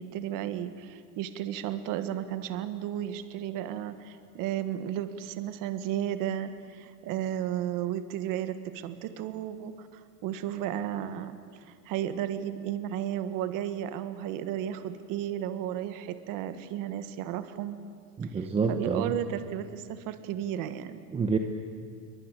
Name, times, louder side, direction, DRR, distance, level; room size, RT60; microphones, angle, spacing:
voice 1, 0.0-17.8 18.3-21.0, right 11 dB, 45° right, 11 dB, 1.5 m, -34 dB
voice 2, 18.2-19.1 21.1-21.4, right 5 dB, 15° right, 5 dB, 0.9 m, -28 dB
28.0 x 23.5 x 8.9 m, 2.3 s
cardioid pair, 170°, 46 cm